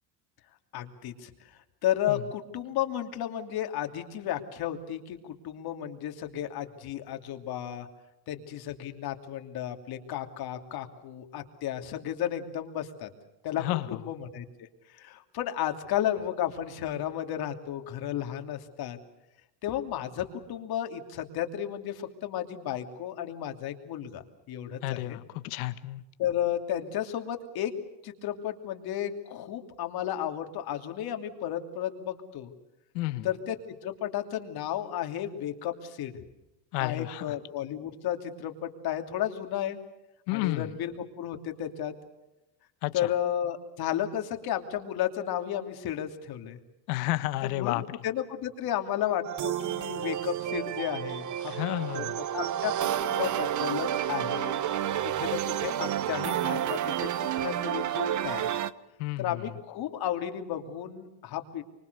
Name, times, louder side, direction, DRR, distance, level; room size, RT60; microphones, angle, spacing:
voice 1, 0.7-1.3 1.8-7.9 8.3-13.1 13.4-14.5 14.9-19.0 19.6-25.2 26.2-27.7 28.0-32.5 33.2-33.6 33.8-36.1 36.8-39.8 40.3-41.9 42.9-46.6 47.4-51.5 51.9-52.0 52.3-54.5 55.0-57.1 57.4-58.5 59.2-61.6, left 11 dB, 55° left, 6 dB, 2.9 m, -33 dB
voice 2, 24.8-26.0 32.9-33.3 36.7-37.3 40.3-40.7 42.8-42.9 46.9-47.8 51.5-52.2 59.0-59.4, left 18 dB, 90° left, 12 dB, 1.6 m, -31 dB
sound 1, 49.2-58.7, right 10 dB, 40° right, 1.1 m, -30 dB
25.5 x 24.5 x 6.8 m, 0.93 s
cardioid pair, 125°, 45 cm